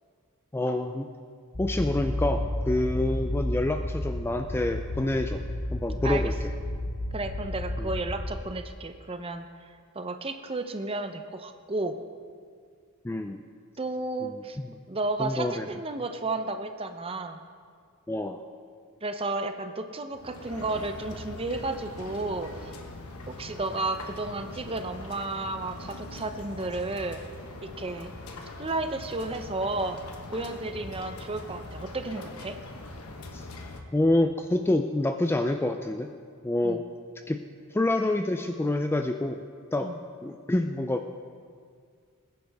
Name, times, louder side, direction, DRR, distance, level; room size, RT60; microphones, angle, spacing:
voice 1, 0.5-1.1 1.6-5.4 5.7-6.3 7.8-7.9 13.0-13.4 14.2-14.7 15.2-15.7 18.1-18.4 33.3-33.5 33.9-36.1 36.4-36.8 37.3-37.4 37.7-39.4 39.7-39.9 40.2-41.0, left 1 dB, 10° left, 6 dB, 0.3 m, -27 dB
sound 1, 1.5-8.3, left 1 dB, 35° left, 1.0 m, -31 dB
voice 2, 7.1-9.4 9.9-12.0 13.8-14.6 14.9-17.4 19.0-22.7 23.3-27.2 27.6-28.1 28.6-30.0 30.3-32.6 36.6-36.8 39.8-40.0, right 2 dB, 25° right, 8 dB, 0.7 m, -32 dB
sound 2, 20.1-33.8, left 2 dB, 75° left, 1.1 m, -42 dB
20.0 x 10.5 x 3.5 m, 2.1 s
head